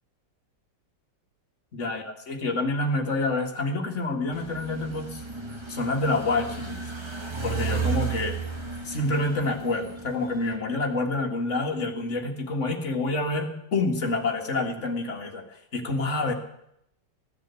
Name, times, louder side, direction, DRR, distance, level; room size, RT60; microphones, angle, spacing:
voice 1, 1.7-5.2 5.7-6.8 7.4-8.4 8.8-15.4 15.7-16.3, left 2 dB, 40° left, 2 dB, 2.2 m, -27 dB
sound 1, 4.3-10.6, right 5 dB, 15° right, 1.6 m, -33 dB
16.0 x 10.5 x 8.3 m, 0.79 s
omnidirectional pair, 2.0 m